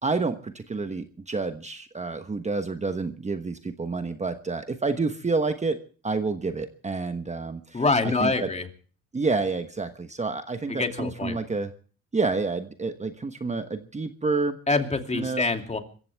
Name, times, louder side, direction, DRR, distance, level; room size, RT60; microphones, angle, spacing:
voice 1, 0.0-5.8 6.0-8.5 9.1-11.7 12.1-14.6 15.1-15.5, right 3 dB, 25° right, 8 dB, 1.2 m, -29 dB
voice 2, 7.7-8.6 10.8-11.4 14.7-15.8, left 3 dB, 20° left, 5 dB, 2.6 m, -25 dB
25.0 x 15.0 x 3.5 m, 0.40 s
cardioid pair, 90°, 30 cm